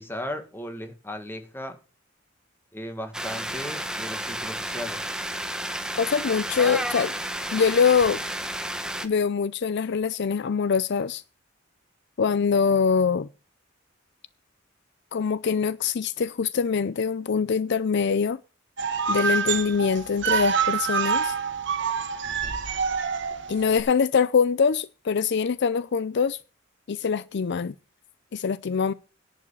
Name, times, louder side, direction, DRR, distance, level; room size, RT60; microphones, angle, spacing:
voice 1, 0.0-1.8 2.7-5.1, left 1 dB, 10° left, 1.8 m, -36 dB
sound 1, 3.1-9.1, right 1 dB, 5° right, 1.1 m, -31 dB
voice 2, 6.0-7.1 7.5-8.2 9.0-11.2 12.2-13.3 15.1-18.4 19.1-21.4 23.5-26.4 26.9-27.7 28.3-28.9, left 6 dB, 60° left, 0.5 m, -23 dB
sound 2, 18.8-23.8, right 6 dB, 65° right, 1.4 m, -26 dB
11.0 x 5.5 x 8.4 m
head